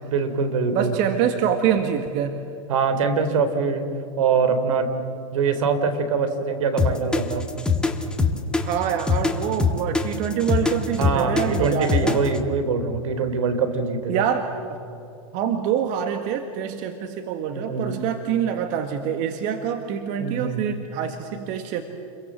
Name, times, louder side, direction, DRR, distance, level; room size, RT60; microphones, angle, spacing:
voice 1, 0.0-0.9 2.7-3.9 4.2-4.9 5.3-7.5 11.0-14.2 17.5-18.0 20.2-20.6, right 5 dB, 75° right, 9 dB, 3.5 m, -23 dB
voice 2, 0.7-2.4 8.6-12.2 14.1-14.8 15.3-21.8, right 8 dB, 45° right, 6 dB, 1.9 m, -25 dB
sound 1, 6.8-12.4, left 4 dB, 5° left, 2.0 m, -22 dB
29.5 x 23.0 x 7.6 m, 2.7 s
hypercardioid pair, 120°, 17 cm